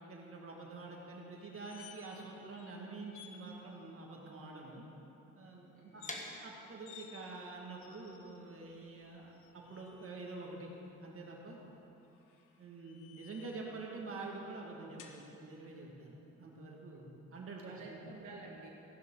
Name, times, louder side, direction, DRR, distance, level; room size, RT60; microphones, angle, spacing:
voice 1, 0.0-4.8 5.4-6.0 6.4-10.7 11.0-11.6 12.6-18.0, right 3 dB, 45° right, -2 dB, 2.2 m, -47 dB
sound 1, 1.4-2.3 2.6-2.7 3.1-3.4 5.9-6.2 6.8-7.1 7.8-8.4 9.3-10.1 12.0-13.6 15.0-15.2, left 8 dB, 85° left, 1.2 m, -56 dB
voice 2, 5.7-6.2 17.2-17.4 17.7-18.7, right 4 dB, 80° right, -2 dB, 1.9 m, -51 dB
sound 2, 6.1-11.9, left 2 dB, 25° left, 1.5 m, -51 dB
15.5 x 11.0 x 4.0 m, 3.0 s
cardioid pair, 90°, 30 cm